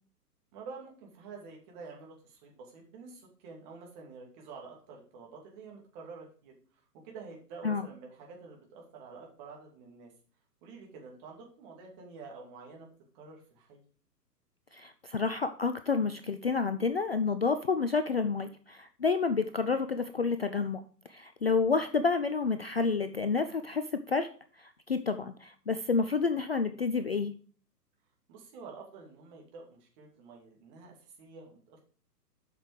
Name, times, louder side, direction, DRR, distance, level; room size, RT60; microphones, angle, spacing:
voice 1, 0.5-10.1 10.6-12.9 13.1-13.8 28.3-31.8, right 4 dB, 25° right, 0 dB, 2.6 m, -48 dB
voice 2, 14.7-20.8 21.1-24.3 24.6-27.3, left 4 dB, 40° left, 10 dB, 0.4 m, -29 dB
8.0 x 6.0 x 4.9 m, 0.43 s
figure-of-eight pair, 125°, 49 cm